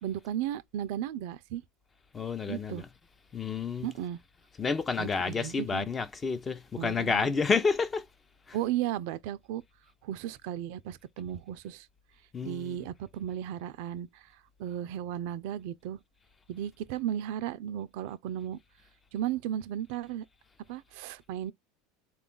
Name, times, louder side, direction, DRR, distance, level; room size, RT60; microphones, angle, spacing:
voice 1, 0.0-1.6 2.5-2.9 3.8-4.2 5.0-5.9 6.8-7.3 8.5-9.6 10.0-11.9 12.4-14.3 14.6-16.0 16.5-18.6 19.1-20.3 20.7-21.5, right 11 dB, 70° right, 0.4 m, -35 dB
voice 2, 2.1-2.9 3.3-3.9 4.6-8.0 8.5-8.6 12.3-12.8, left 5 dB, 25° left, 0.5 m, -30 dB
3.7 x 2.3 x 3.6 m
supercardioid pair, 105°, 0 cm